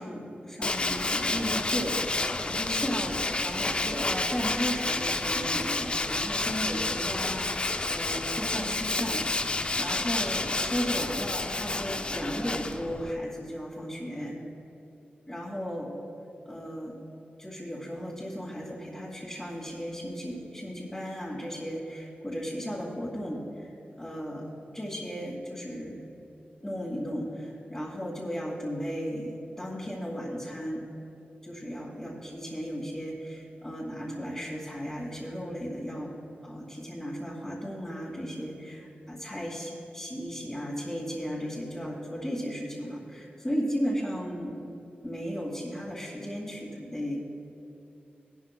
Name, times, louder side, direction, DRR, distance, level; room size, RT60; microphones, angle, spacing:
voice 1, 0.0-14.3 15.3-15.9 16.5-17.0 17.4-24.5 24.7-26.1 26.6-29.3 29.6-30.8 31.4-36.1 36.4-44.5 45.0-47.2, equal, 10° left, -8 dB, 2.2 m, -35 dB
Tools, 0.6-13.1, left 2 dB, 30° left, 0.4 m, -30 dB
18.5 x 12.0 x 2.2 m, 2.8 s
wide cardioid pair, 115°, 4 cm